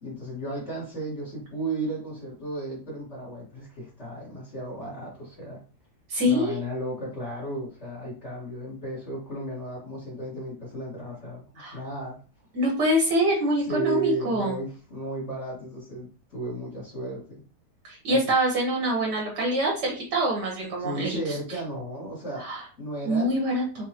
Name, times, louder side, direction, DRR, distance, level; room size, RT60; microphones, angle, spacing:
voice 1, 0.0-5.6 6.3-11.4 11.7-12.2 13.7-17.4 18.1-18.2 20.8-22.5 22.8-23.3, right 2 dB, 45° left, -7 dB, 1.9 m, -34 dB
voice 2, 6.1-6.6 11.6-11.8 12.5-14.5 17.8-21.4 22.4-22.6 23.1-23.8, equal, 85° right, -2 dB, 1.7 m, -25 dB
4.4 x 3.7 x 2.9 m, 0.36 s
omnidirectional pair, 1.8 m